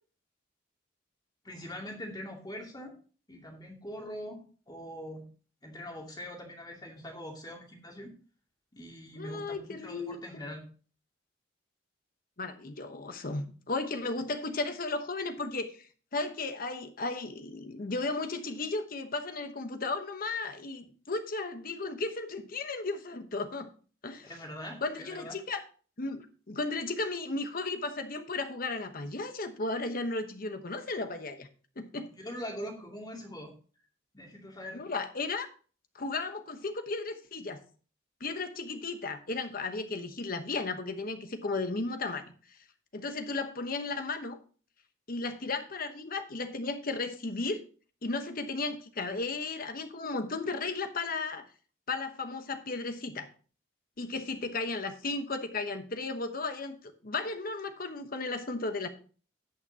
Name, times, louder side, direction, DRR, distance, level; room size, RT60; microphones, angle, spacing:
voice 1, 1.4-3.0 3.3-5.2 5.6-8.1 8.7-10.6 24.2-25.3 32.2-33.5 34.1-34.8, equal, 20° left, 0 dB, 2.5 m, -42 dB
voice 2, 9.2-10.4 12.4-23.7 24.0-24.3 24.8-25.6 26.0-31.5 31.8-32.1 34.7-35.5 35.9-37.6 38.2-42.6 42.9-44.4 45.1-47.6 48.0-51.5 51.9-53.3 54.0-58.9, left 3 dB, 50° left, 8 dB, 1.0 m, -35 dB
17.5 x 5.9 x 2.9 m, 0.39 s
head